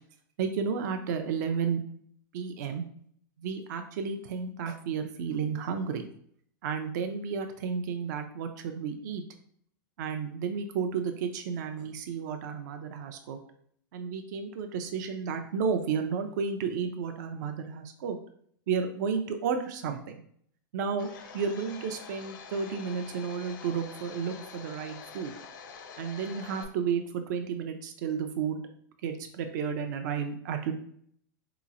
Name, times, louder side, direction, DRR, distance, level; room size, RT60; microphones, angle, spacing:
voice 1, 0.4-1.8 2.3-2.8 3.4-6.1 6.6-9.2 10.0-13.4 13.9-18.2 18.7-20.2 20.7-21.1 21.3-25.3 26.0-28.6 29.0-30.7, right 6 dB, 55° right, 6 dB, 0.4 m, -32 dB
Domestic sounds home sounds, 21.0-26.7, left 6 dB, 70° left, 0.6 m, -46 dB
4.0 x 2.9 x 2.5 m, 0.64 s
supercardioid pair, 160°, 11 cm